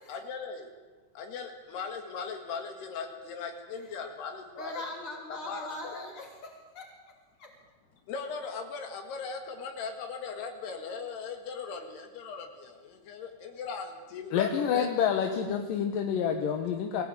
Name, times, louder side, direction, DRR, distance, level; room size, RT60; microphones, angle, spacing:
voice 1, 0.1-0.7 1.2-4.9 5.3-5.7 8.1-14.9, left 5 dB, 80° left, 4 dB, 3.9 m, -38 dB
voice 2, 4.5-6.9 7.4-7.5, left 1 dB, 35° left, 0 dB, 4.8 m, -40 dB
voice 3, 14.3-17.0, left 8 dB, 65° left, 4 dB, 2.6 m, -28 dB
23.5 x 16.5 x 8.8 m, 1.3 s
omnidirectional pair, 4.6 m